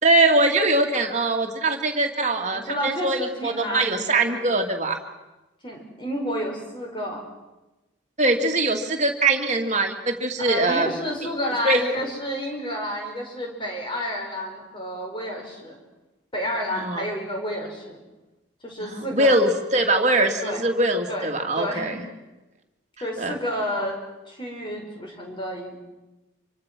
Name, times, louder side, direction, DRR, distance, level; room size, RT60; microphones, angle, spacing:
voice 1, 0.0-5.0 8.2-10.9 11.6-11.8 16.7-17.1 18.8-22.0 23.2-23.4, right 2 dB, 35° right, 3 dB, 2.3 m, -22 dB
voice 2, 2.5-4.5 5.6-7.3 10.5-15.8 16.3-18.0 18.6-19.3 20.4-20.6 21.1-22.1 23.0-24.0 24.3-25.8, equal, 25° left, 1 dB, 5.2 m, -30 dB
26.0 x 24.5 x 6.2 m, 1.1 s
head